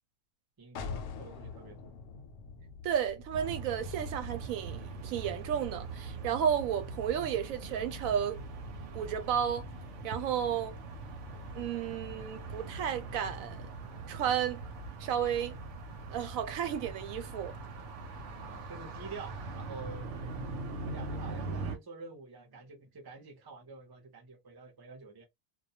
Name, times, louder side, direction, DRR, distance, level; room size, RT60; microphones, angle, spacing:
voice 1, 0.6-2.0 18.2-20.1 20.8-25.2, right 4 dB, 30° right, 0.4 m, -48 dB
sound 1, 0.8-6.3, left 5 dB, 75° left, 0.9 m, -46 dB
voice 2, 2.8-8.4 8.9-9.7 10.0-10.8 11.5-13.7 14.1-14.6 15.0-15.6 16.1-17.5, right 9 dB, 90° right, 1.0 m, -32 dB
sound 2, 3.3-21.8, right 3 dB, 65° right, 0.9 m, -42 dB
2.3 x 2.1 x 2.7 m
omnidirectional pair, 1.4 m